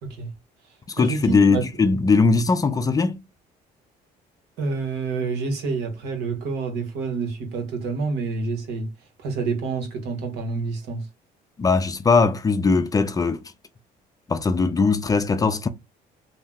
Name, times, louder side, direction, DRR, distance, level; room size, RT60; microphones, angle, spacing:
voice 1, 0.0-0.3 0.7-1.8 4.6-8.9 9.2-11.1, right 4 dB, 85° right, 1.1 m, -28 dB
voice 2, 0.9-3.2 11.6-13.4 14.3-15.7, left 4 dB, 20° left, 0.4 m, -20 dB
2.7 x 2.1 x 3.5 m
cardioid pair, 110°, 17 cm